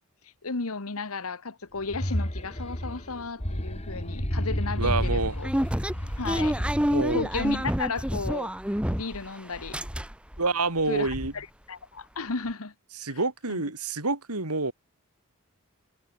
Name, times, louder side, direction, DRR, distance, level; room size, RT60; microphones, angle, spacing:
voice 1, 0.4-5.5 6.2-6.6 7.1-8.5 8.9-9.8 10.9-12.7 13.5-13.6, left 4 dB, 70° left, 1.3 m, -34 dB
sound 1, 1.7-8.1, equal, 30° left, 3.6 m, -33 dB
sound 2, 4.8-9.3 9.5-10.4 10.8-10.9 11.1-11.3, equal, 5° right, 1.5 m, -28 dB
voice 2, 4.8-5.4 6.9-7.2 10.4-11.3 13.0-14.7, right 3 dB, 85° right, 3.6 m, -27 dB
head